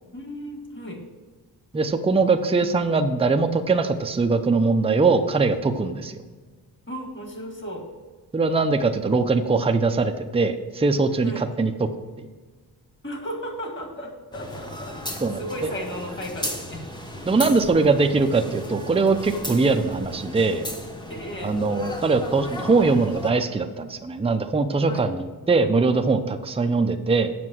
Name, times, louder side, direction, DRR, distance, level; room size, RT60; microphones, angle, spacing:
voice 1, 0.1-1.0 6.9-7.9 11.2-11.4 13.0-16.8 21.1-21.5 24.8-25.1, equal, 30° left, 2 dB, 2.0 m, -35 dB
voice 2, 1.7-6.2 8.3-11.9 15.2-15.4 17.2-20.7 21.4-27.3, right 3 dB, 15° right, 6 dB, 0.5 m, -21 dB
sound 1, 14.3-23.3, left 1 dB, 10° left, 0.9 m, -35 dB
7.7 x 5.9 x 6.2 m, 1.4 s
wide cardioid pair, 125°, 38 cm